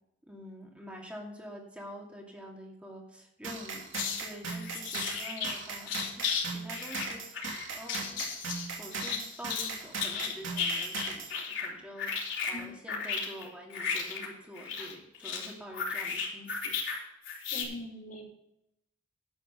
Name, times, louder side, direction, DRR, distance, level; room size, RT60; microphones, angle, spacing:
voice 1, 0.2-3.8 4.2-8.4 8.8-16.8, equal, 5° right, -1 dB, 2.3 m, -47 dB
sound 1, 3.4-11.3, right 4 dB, 75° right, 2.8 m, -39 dB
sound 2, 3.9-4.2 4.5-5.6 5.9-6.4 6.7-9.7 10.0-11.7 12.0-17.0 17.2-17.6, left 6 dB, 65° left, 3.5 m, -34 dB
voice 2, 17.5-18.3, left 1 dB, 40° left, 0 dB, 3.0 m, -42 dB
11.0 x 8.1 x 5.5 m, 0.82 s
head